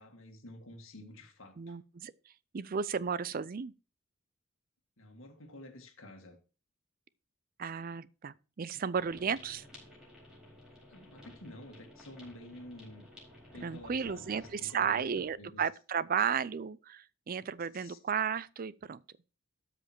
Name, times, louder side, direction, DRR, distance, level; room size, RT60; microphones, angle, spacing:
voice 1, 0.0-1.8 5.0-6.4 10.7-13.1 13.5-15.6 17.7-18.0, left 1 dB, 75° left, 2.0 m, -50 dB
voice 2, 1.6-2.1 2.5-3.7 7.6-9.7 13.6-19.0, right 7 dB, 45° right, 0.4 m, -34 dB
sound 1, 9.0-15.3, left 1 dB, 5° right, 4.4 m, -54 dB
13.0 x 5.1 x 4.5 m
head